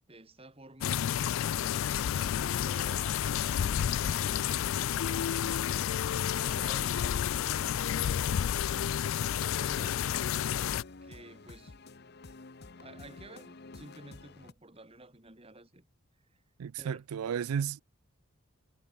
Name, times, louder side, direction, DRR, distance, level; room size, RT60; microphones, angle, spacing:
voice 1, 0.1-1.1 1.5-6.0 6.4-10.5 11.0-11.7 12.8-15.9 16.3-16.4 16.8-17.0, right 2 dB, 25° right, 2.3 m, -53 dB
sound 1, 0.8-10.8, left 9 dB, 65° left, 0.3 m, -30 dB
sound 2, 3.4-14.5, left 3 dB, 50° left, 0.9 m, -50 dB
voice 2, 16.6-17.8, right 7 dB, 85° right, 0.4 m, -33 dB
head